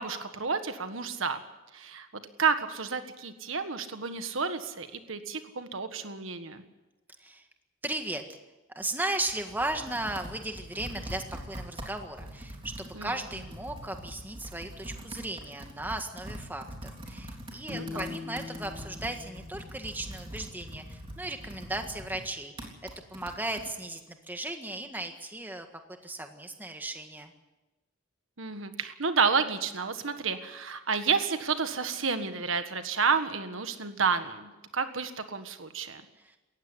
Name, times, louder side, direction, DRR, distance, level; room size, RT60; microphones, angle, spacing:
voice 1, 0.0-1.4 1.7-2.1 2.4-6.6 12.9-13.1 17.7-18.1 28.4-36.0, right 5 dB, 75° right, 9 dB, 1.6 m, -30 dB
voice 2, 7.8-8.2 8.7-25.7 26.0-27.3 36.1-36.4, right 2 dB, 10° right, 5 dB, 1.7 m, -36 dB
Computer keyboard, 9.1-23.7, equal, 25° right, 3.7 m, -44 dB
sound 1, 17.7-20.8, left 4 dB, 10° left, 2.0 m, -43 dB
18.5 x 15.0 x 9.8 m, 1.1 s
head